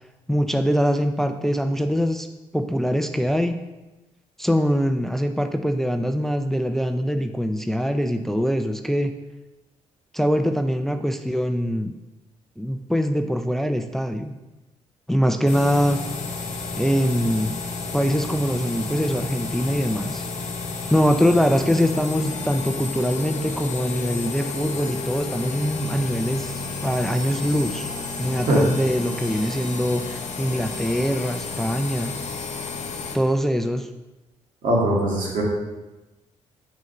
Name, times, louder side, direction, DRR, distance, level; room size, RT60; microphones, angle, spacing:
voice 1, 0.3-2.3 2.5-3.6 4.4-9.2 10.1-11.9 12.6-14.4 15.1-16.0 16.8-17.6 17.9-20.2 20.9-27.9 28.2-32.2 33.1-33.9, equal, ahead, 7 dB, 0.5 m, -23 dB
sound 1, 15.5-33.2, left 4 dB, 60° left, 1.1 m, -31 dB
voice 2, 34.6-35.4, right 1 dB, 75° right, -3 dB, 2.0 m, -21 dB
6.2 x 3.9 x 5.4 m, 1.1 s
supercardioid pair, 60°, 13 cm